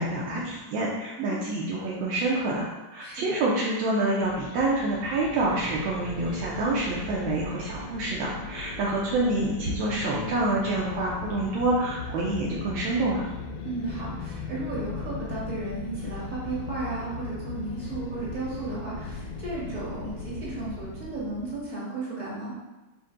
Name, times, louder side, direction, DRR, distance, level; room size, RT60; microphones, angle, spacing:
voice 1, 0.0-2.7 2.9-13.3, right 2 dB, 80° right, -4 dB, 1.4 m, -27 dB
voice 2, 3.0-3.4 13.6-22.5, right 3 dB, 40° right, -8 dB, 2.1 m, -34 dB
sound 1, 4.2-21.7, left 4 dB, 90° left, 1.4 m, -38 dB
5.5 x 2.6 x 3.7 m, 1.1 s
omnidirectional pair, 2.2 m